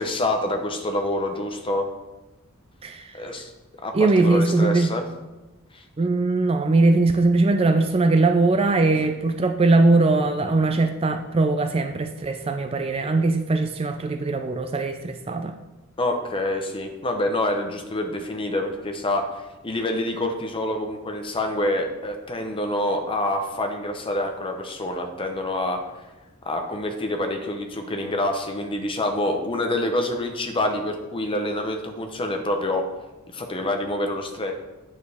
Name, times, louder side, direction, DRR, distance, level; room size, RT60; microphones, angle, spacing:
voice 1, 0.0-1.9 3.1-3.5 3.8-5.0 5.7-5.8 8.9-9.1 16.0-25.8 26.4-32.9 33.3-34.5, left 1 dB, 25° left, 4 dB, 0.8 m, -26 dB
voice 2, 3.9-4.9 6.0-15.5, right 3 dB, 25° right, 6 dB, 0.4 m, -20 dB
9.1 x 6.5 x 3.5 m, 1.1 s
head